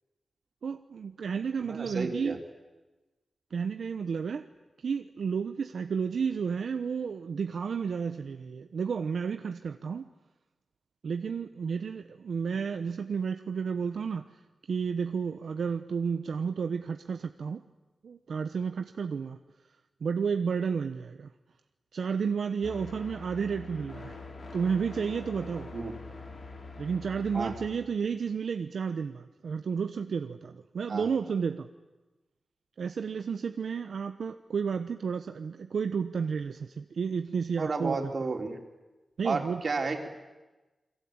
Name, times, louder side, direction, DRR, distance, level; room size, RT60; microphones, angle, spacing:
voice 1, 0.6-2.4 3.5-4.4 4.8-10.1 11.0-14.3 14.7-17.6 18.0-19.4 20.0-21.3 21.9-24.2 24.5-25.7 26.8-31.7 32.8-38.0 39.2-39.6, right 6 dB, 80° right, 8 dB, 0.9 m, -32 dB
voice 2, 1.6-2.4 25.7-25.9 27.3-27.5 30.9-31.1 37.6-38.6 39.2-40.1, right 3 dB, 55° right, 3 dB, 3.6 m, -32 dB
sound 1, 22.6-27.7, left 3 dB, 65° left, 5.4 m, -44 dB
28.5 x 22.0 x 8.8 m, 1.1 s
wide cardioid pair, 95°, 0 cm